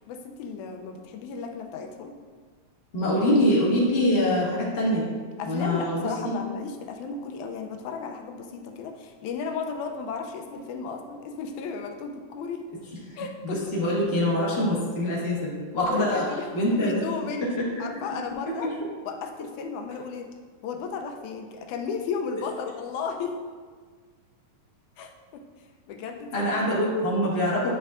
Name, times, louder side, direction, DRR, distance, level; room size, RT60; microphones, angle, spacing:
voice 1, 0.1-2.1 5.4-12.7 13.2-13.6 15.7-18.7 19.1-20.3 20.6-23.4 25.0-26.6, left 5 dB, 85° left, 4 dB, 2.0 m, -34 dB
voice 2, 2.9-5.1 5.4-6.3 13.4-16.2 16.5-17.0 18.6-18.7 22.3-22.4 26.3-27.7, left 1 dB, 35° left, -6 dB, 0.9 m, -24 dB
9.3 x 5.4 x 2.5 m, 1.5 s
omnidirectional pair, 3.4 m